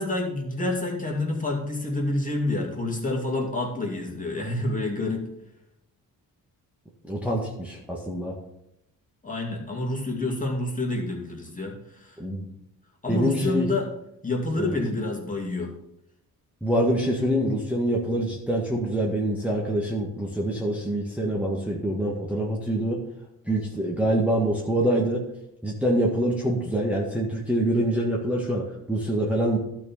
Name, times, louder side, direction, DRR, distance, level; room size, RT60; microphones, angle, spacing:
voice 1, 0.0-5.3 9.2-12.2 13.0-13.9 14.2-15.7, left 2 dB, 20° left, 0 dB, 2.6 m, -28 dB
voice 2, 7.0-8.4 12.2-12.5 13.1-13.7 14.6-14.8 16.6-23.0 23.5-25.2 25.6-29.6, right 1 dB, 5° right, -4 dB, 1.7 m, -25 dB
12.0 x 4.7 x 5.6 m, 0.81 s
cardioid pair, 85°, 38 cm